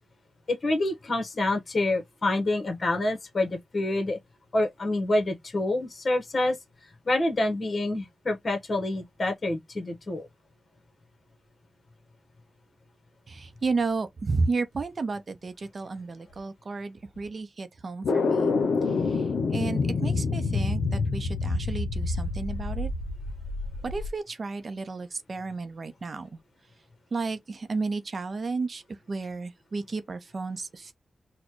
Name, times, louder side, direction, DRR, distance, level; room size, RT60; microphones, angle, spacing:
voice 1, 0.5-4.2 4.5-6.6 7.0-10.3, left 2 dB, 50° left, 1.1 m, -27 dB
voice 2, 13.3-18.5 18.9-22.9 23.8-26.4 27.1-30.9, right 3 dB, 55° right, 0.6 m, -32 dB
sound 1, 18.0-24.1, left 4 dB, 90° left, 0.6 m, -27 dB
4.1 x 2.2 x 3.0 m
cardioid pair, 55°, 0 cm